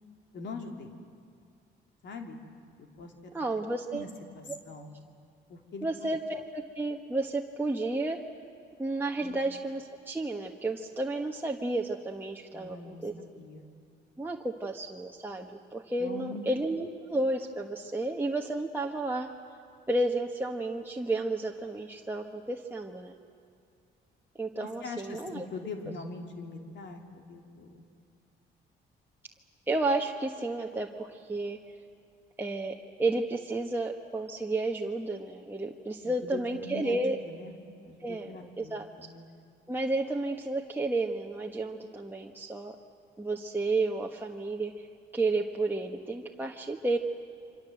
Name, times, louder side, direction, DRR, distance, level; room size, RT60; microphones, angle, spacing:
voice 1, 0.3-0.9 2.0-2.4 2.8-3.3 3.9-4.1 4.3-4.9 5.5-5.9 9.2-9.4 12.5-13.7 16.0-16.5 24.8-27.8 36.0-37.6 37.8-39.3, left 3 dB, 65° left, 3 dB, 3.0 m, -42 dB
voice 2, 3.3-4.0 5.8-8.2 8.8-13.1 14.2-19.3 19.9-23.1 24.4-25.4 29.7-31.6 32.4-37.2 38.0-38.9 39.7-42.7 43.2-44.7 45.1-47.0, right 2 dB, 10° right, 0 dB, 1.5 m, -32 dB
27.5 x 25.0 x 7.9 m, 2.4 s
cardioid pair, 90°, 20 cm